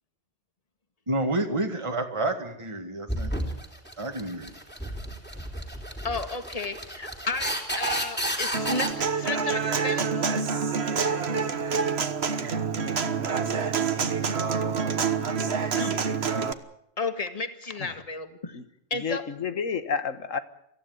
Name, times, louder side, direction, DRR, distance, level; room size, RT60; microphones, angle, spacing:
voice 1, 1.1-3.3 4.0-4.5, right 2 dB, 25° right, 4 dB, 2.1 m, -29 dB
sound 1, 3.1-8.9, right 1 dB, 10° left, 3.7 m, -32 dB
voice 2, 6.0-10.3 15.7-16.0 17.0-18.6 18.9-19.2, left 3 dB, 30° left, 8 dB, 2.0 m, -33 dB
Human voice / Acoustic guitar, 8.5-16.5, right 5 dB, 55° right, 1.5 m, -27 dB
voice 3, 19.0-20.4, left 6 dB, 90° left, 11 dB, 1.8 m, -30 dB
25.0 x 15.5 x 9.5 m, 0.77 s
omnidirectional pair, 1.3 m